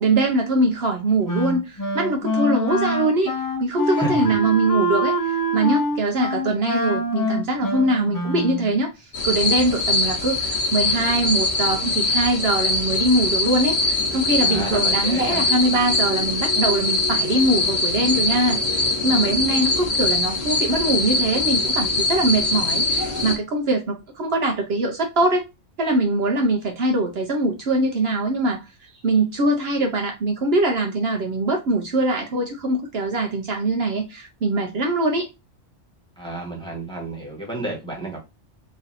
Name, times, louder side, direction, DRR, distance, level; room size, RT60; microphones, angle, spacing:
voice 1, 0.0-3.3 3.6-25.4 25.8-35.3, right 2 dB, 60° right, 0.9 m, -22 dB
Wind instrument woodwind instrument, 1.3-8.7, equal, 25° left, 0.4 m, -24 dB
voice 2, 3.9-4.3 14.4-15.4 36.2-38.2, right 2 dB, 5° left, 1.2 m, -31 dB
sound 1, 9.1-23.4, left 2 dB, 45° left, 0.9 m, -22 dB
3.1 x 2.6 x 3.9 m
omnidirectional pair, 1.2 m